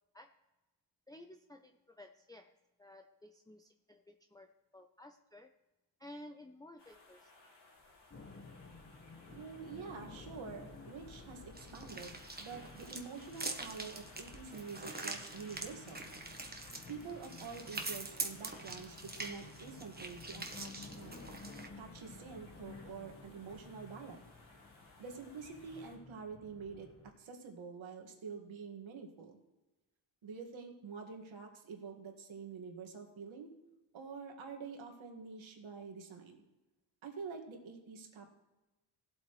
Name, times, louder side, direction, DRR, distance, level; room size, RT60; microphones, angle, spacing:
voice 1, 1.1-2.5 2.8-5.5 6.0-7.3, left 1 dB, 10° left, 4 dB, 0.6 m, -54 dB
sound 1, 6.8-26.0, left 2 dB, 60° left, 3.3 m, -60 dB
sound 2, 8.1-27.1, left 3 dB, 30° left, 1.2 m, -54 dB
voice 2, 9.3-16.1 16.9-21.2 21.8-24.2 25.0-26.9 27.2-29.4 30.2-33.5 33.9-36.4 37.0-38.3, right 5 dB, 75° right, 2 dB, 2.0 m, -47 dB
sound 3, 11.6-21.7, right 2 dB, 20° right, 1.3 m, -44 dB
17.5 x 8.1 x 3.2 m, 1.1 s
cardioid pair, 70°, 48 cm